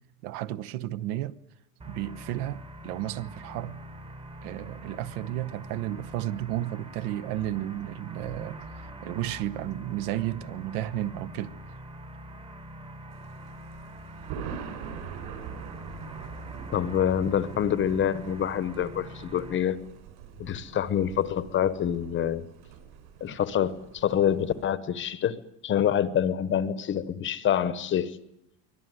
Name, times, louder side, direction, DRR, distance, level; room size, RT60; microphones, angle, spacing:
voice 1, 0.2-1.4 1.8-3.8 4.4-11.6, right 14 dB, 70° right, 1.2 m, -33 dB
sound 1, 1.8-19.6, right 1 dB, 10° right, 1.1 m, -44 dB
Thunder, 13.1-24.6, right 7 dB, 55° right, 5.5 m, -44 dB
voice 2, 16.7-19.8 20.4-22.4 23.2-25.4 25.6-28.2, left 9 dB, 25° left, 0.9 m, -26 dB
24.5 x 18.0 x 9.4 m
supercardioid pair, 155°, 46 cm